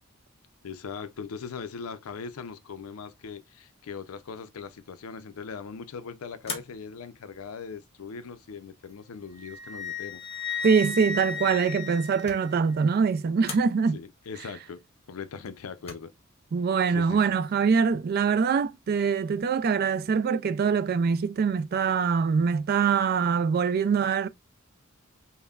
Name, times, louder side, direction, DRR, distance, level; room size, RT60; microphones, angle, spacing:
voice 1, 0.6-10.2 13.9-14.8 15.1-16.1 16.9-17.2, left 5 dB, 85° left, 0.5 m, -40 dB
sound 1, 6.4-7.1 7.8-8.4 11.7-12.6 13.4-13.8 15.5-15.9, left 4 dB, 30° left, 0.8 m, -40 dB
Wind instrument woodwind instrument, 9.4-12.8, left 4 dB, 5° left, 1.1 m, -35 dB
voice 2, 10.6-14.0 16.5-24.3, right 6 dB, 45° right, 0.3 m, -24 dB
5.4 x 2.1 x 2.3 m
head